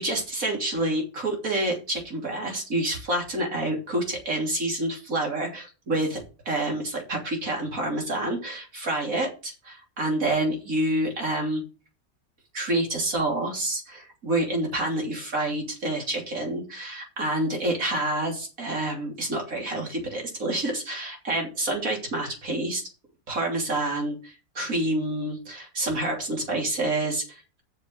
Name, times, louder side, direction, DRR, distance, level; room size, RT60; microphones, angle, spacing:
voice 1, 0.0-11.6 12.5-22.8 23.3-27.6, right 1 dB, 65° right, 0 dB, 3.5 m, -28 dB
8.1 x 6.8 x 6.4 m, 0.33 s
omnidirectional pair, 1.6 m